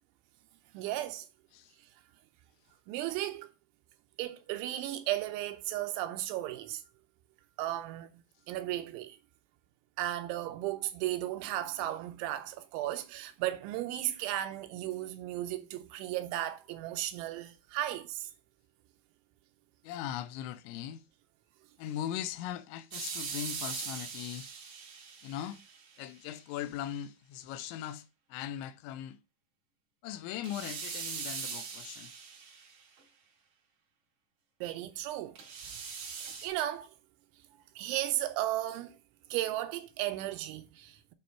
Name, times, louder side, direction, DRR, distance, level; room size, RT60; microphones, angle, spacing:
voice 1, 0.7-1.3 2.9-3.5 4.2-6.8 7.6-8.2 8.5-9.2 10.0-18.3 34.6-35.4 36.4-36.9 37.8-39.0 39.3-41.1, right 14 dB, 85° right, 3.0 m, -35 dB
voice 2, 19.8-21.0 21.8-24.5 25.2-25.6 26.0-29.2 30.0-32.1, left 11 dB, 85° left, 2.9 m, -39 dB
sound 1, 22.9-26.0 30.4-33.0 35.3-36.5, right 6 dB, 60° right, 2.3 m, -41 dB
7.6 x 3.1 x 5.6 m
omnidirectional pair, 5.3 m